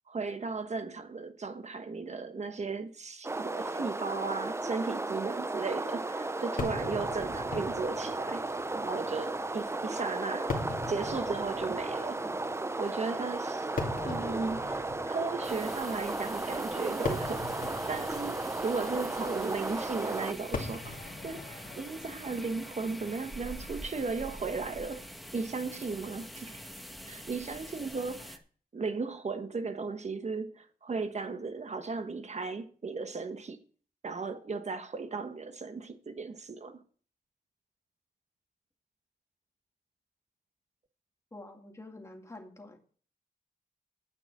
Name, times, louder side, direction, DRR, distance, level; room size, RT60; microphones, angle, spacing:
voice 1, 0.1-8.4 8.7-10.5 10.9-12.2 12.8-13.7 14.0-25.1 25.3-26.6 27.0-28.4 28.7-33.6 34.0-36.8, right 4 dB, 45° right, 1.2 m, -36 dB
sound 1, 3.2-20.3, right 2 dB, 15° right, 0.5 m, -35 dB
Fireworks, 6.6-23.9, left 3 dB, 60° left, 2.4 m, -42 dB
sound 2, 15.4-28.4, equal, ahead, 1.4 m, -45 dB
voice 2, 41.3-42.8, left 2 dB, 20° left, 2.3 m, -47 dB
9.6 x 8.9 x 6.1 m
wide cardioid pair, 135°, 16 cm